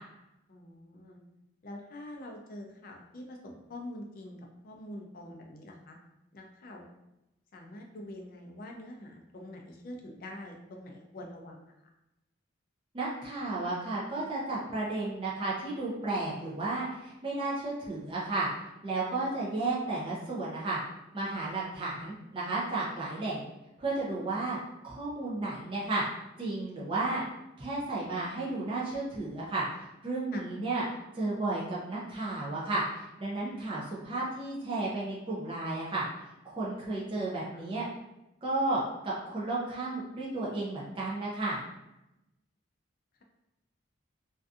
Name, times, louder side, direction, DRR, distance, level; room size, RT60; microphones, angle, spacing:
voice 1, 0.5-1.2 1.6-4.4 4.6-6.0 6.3-6.9 7.5-11.7 19.2-19.3 30.3-30.5, left 1 dB, 45° left, 1 dB, 0.4 m, -45 dB
voice 2, 12.9-18.5 18.8-20.8 21.1-23.5 23.8-24.6 24.8-26.0 26.4-27.2 27.6-30.8 31.1-36.0 36.4-37.9 38.4-41.6, right 2 dB, 25° right, -6 dB, 0.4 m, -33 dB
2.6 x 2.3 x 2.4 m, 0.92 s
head